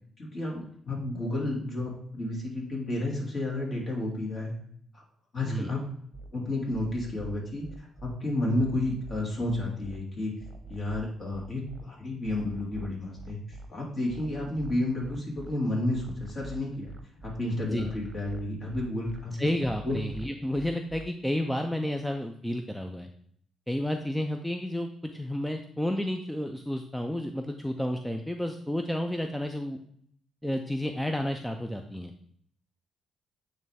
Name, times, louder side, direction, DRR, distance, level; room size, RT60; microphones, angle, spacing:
voice 1, 0.2-4.5 4.9-5.0 5.3-5.8 6.3-10.3 10.7-16.9 17.2-19.3 19.8-19.9, left 1 dB, 40° left, -3 dB, 2.6 m, -31 dB
sound 1, 6.1-6.3 6.7-8.1 8.5-10.0 10.4-11.8 12.2-13.7 14.1-15.5 15.9-17.4 17.8-19.2 19.6-21.0, right 3 dB, 25° right, 1.0 m, -44 dB
voice 2, 19.4-23.1 23.7-29.8 30.4-32.1, left 1 dB, 5° left, 5 dB, 0.4 m, -31 dB
9.0 x 3.2 x 3.4 m, 0.66 s
cardioid pair, 90°, 0 cm